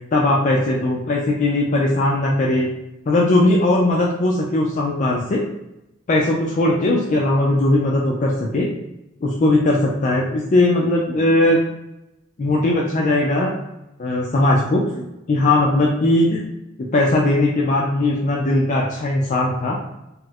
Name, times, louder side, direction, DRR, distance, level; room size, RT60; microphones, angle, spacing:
voice 1, 0.1-2.7 3.1-5.4 6.1-8.7 9.2-11.6 12.4-13.5 14.0-15.0 15.3-16.4 16.8-19.8, left 2 dB, 40° left, -2 dB, 0.4 m, -19 dB
4.2 x 2.0 x 2.4 m, 0.89 s
head